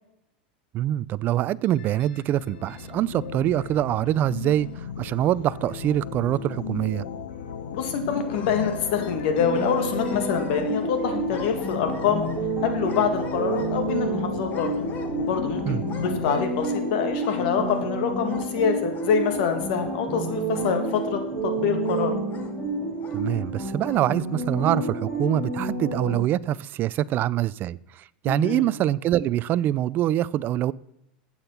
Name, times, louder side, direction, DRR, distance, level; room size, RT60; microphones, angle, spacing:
voice 1, 0.7-4.7 5.0-7.0 15.7-15.8 23.1-27.8 28.2-30.7, right 13 dB, 40° right, 0.4 m, -24 dB
sound 1, 1.6-16.3, left 7 dB, 90° left, 1.4 m, -36 dB
sound 2, 5.3-6.2 6.6-6.7 7.1-7.2 8.1-9.3 9.5-11.0 11.3-12.5 12.8-14.0 14.5-15.4 15.9-16.8 17.2-17.9 18.2-18.7 18.9-19.5 20.5-21.1 21.8-22.5 23.0-23.2 23.8-24.1, left 5 dB, 35° left, 1.7 m, -42 dB
voice 2, 7.7-12.3 12.6-14.7 15.2-22.1 28.3-28.7, left 6 dB, 65° left, 2.3 m, -26 dB
sound 3, 9.4-26.2, right 2 dB, 5° left, 4.8 m, -30 dB
12.0 x 8.8 x 5.9 m
supercardioid pair, 125°, 5 cm